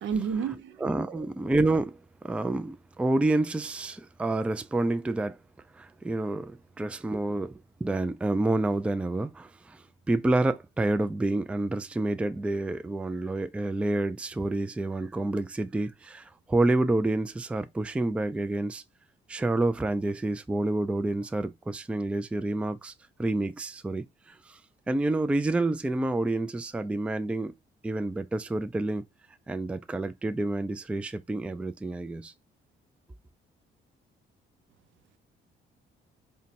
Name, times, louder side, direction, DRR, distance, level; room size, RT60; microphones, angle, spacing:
voice 1, 0.0-1.3, right 6 dB, 70° right, 0.6 m, -32 dB
voice 2, 0.8-5.4 5.7-18.8 19.3-22.9 23.2-24.6 24.9-27.5 27.8-29.0 29.5-32.3, right 2 dB, 5° right, 0.3 m, -28 dB
4.9 x 2.2 x 2.8 m
cardioid pair, 90°, 20 cm